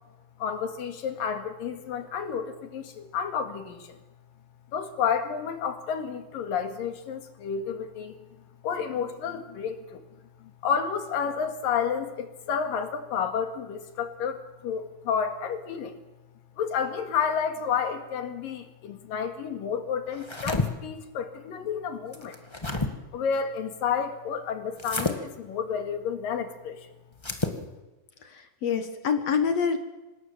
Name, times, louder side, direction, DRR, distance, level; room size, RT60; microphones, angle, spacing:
voice 1, 0.4-4.0 4.7-8.2 8.6-10.0 10.4-16.0 16.6-22.4 23.1-26.9, left 7 dB, 75° left, 7 dB, 3.6 m, -30 dB
sound 1, 20.1-20.7 22.1-22.9 24.8-25.2 27.2-27.6, left 2 dB, 25° left, 0.5 m, -29 dB
voice 2, 28.2-29.8, left 6 dB, 55° left, 8 dB, 2.1 m, -26 dB
25.5 x 18.5 x 7.4 m, 1.1 s
omnidirectional pair, 4.1 m